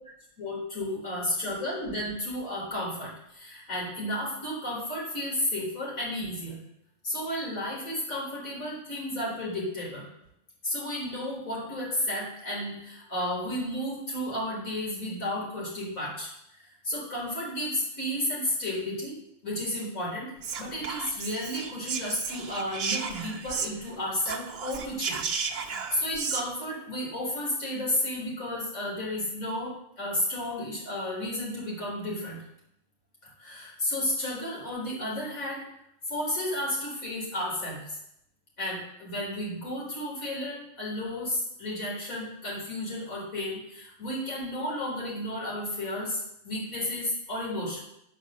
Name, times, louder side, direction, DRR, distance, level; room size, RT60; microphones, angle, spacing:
voice 1, 0.4-6.6 7.0-10.1 10.6-19.2 19.4-20.3 20.6-25.2 25.6-32.4 33.2-35.6 36.1-37.8 38.6-47.8, left 1 dB, 80° left, -4 dB, 4.2 m, -32 dB
Whispering, 20.4-23.9 24.2-26.4, right 5 dB, 50° right, 0.9 m, -34 dB
8.7 x 5.4 x 6.4 m, 0.78 s
omnidirectional pair, 1.4 m